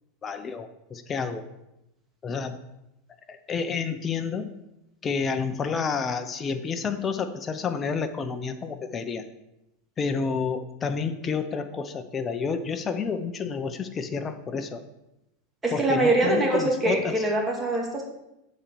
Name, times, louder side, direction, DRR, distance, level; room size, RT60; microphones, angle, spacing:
voice 1, 0.2-1.5 2.2-2.6 3.3-4.5 5.0-9.2 10.0-14.8 15.7-17.2, left 5 dB, 25° left, 9 dB, 0.8 m, -29 dB
voice 2, 15.6-18.0, right 2 dB, 15° right, -1 dB, 2.2 m, -23 dB
7.7 x 4.4 x 7.0 m, 0.90 s
supercardioid pair, 120°, 0 cm